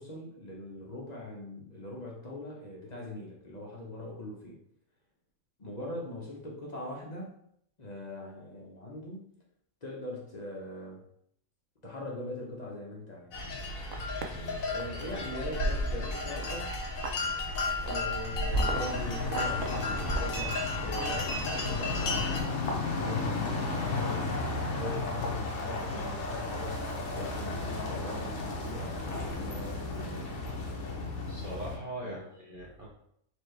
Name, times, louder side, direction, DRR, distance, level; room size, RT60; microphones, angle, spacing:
voice 1, 0.0-4.6 5.6-7.3 7.8-9.3 9.8-11.0 11.8-13.4 14.7-16.8 17.8-26.9 27.1-30.2 32.0-32.3, left 1 dB, 35° left, -2 dB, 0.8 m, -41 dB
Cowbells Herd of Cows Austrian Alps, 13.3-22.4, left 3 dB, 75° left, 1.3 m, -34 dB
sound 1, 13.6-14.3 14.8-15.0 15.3-16.5 16.7-20.4, right 1 dB, 75° right, 0.9 m, -34 dB
sound 2, 18.6-31.8, left 3 dB, 60° left, 1.0 m, -34 dB
voice 2, 27.6-28.0 31.3-32.9, right 1 dB, 45° right, -4 dB, 0.8 m, -42 dB
4.4 x 2.8 x 3.2 m, 0.70 s
omnidirectional pair, 1.5 m